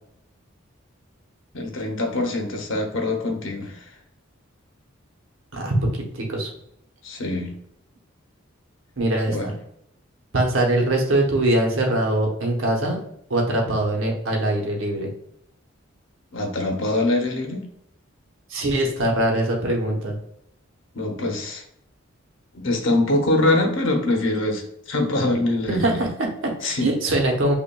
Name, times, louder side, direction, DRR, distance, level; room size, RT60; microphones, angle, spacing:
voice 1, 1.5-3.9 7.0-7.5 9.3-9.5 16.3-17.6 20.9-21.6 22.5-26.0 26.6-26.9, left 2 dB, 70° left, 2 dB, 0.8 m, -23 dB
voice 2, 5.5-6.5 9.0-9.5 10.3-13.0 13.3-15.1 18.5-20.2 25.7-27.5, right 1 dB, 75° right, 0 dB, 0.9 m, -22 dB
5.4 x 2.4 x 2.2 m, 0.73 s
head